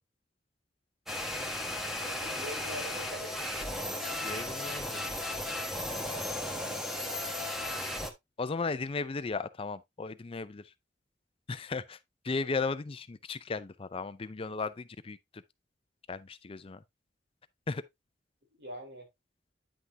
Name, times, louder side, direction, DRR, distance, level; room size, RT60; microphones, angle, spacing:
sound 1, 1.1-8.1, left 1 dB, ahead, 1.2 m, -35 dB
voice 1, 2.0-3.5 6.0-6.5 18.6-19.1, equal, 65° right, 3.8 m, -44 dB
voice 2, 4.2-5.0 5.6-5.7 8.4-10.6 11.5-12.0 12.2-15.2 16.1-16.8 17.7-17.8, left 4 dB, 30° left, 0.5 m, -35 dB
9.7 x 5.7 x 2.8 m
head